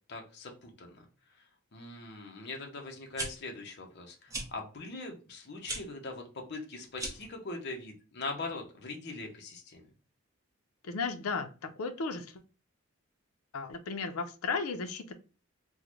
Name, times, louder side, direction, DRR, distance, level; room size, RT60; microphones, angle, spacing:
voice 1, 0.1-1.1 1.7-9.8, left 3 dB, 50° left, 0.7 m, -41 dB
sound 1, 3.1-3.3 4.3-4.5 5.6-5.8 6.9-7.3, right 2 dB, 15° right, 0.6 m, -37 dB
voice 2, 10.8-12.3 13.5-15.1, left 4 dB, 85° left, 0.5 m, -35 dB
3.7 x 2.0 x 3.0 m
head